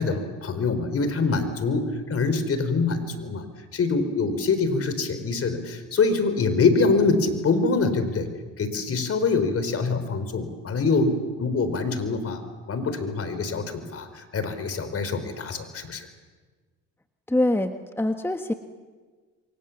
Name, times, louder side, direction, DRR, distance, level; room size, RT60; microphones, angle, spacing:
voice 1, 0.0-3.4 3.7-8.3 8.6-12.4 12.7-16.1, left 4 dB, 45° left, 10 dB, 4.3 m, -24 dB
voice 2, 17.3-18.5, left 1 dB, 5° left, 7 dB, 1.4 m, -24 dB
28.0 x 24.5 x 7.3 m, 1.5 s
supercardioid pair, 75°, 31 cm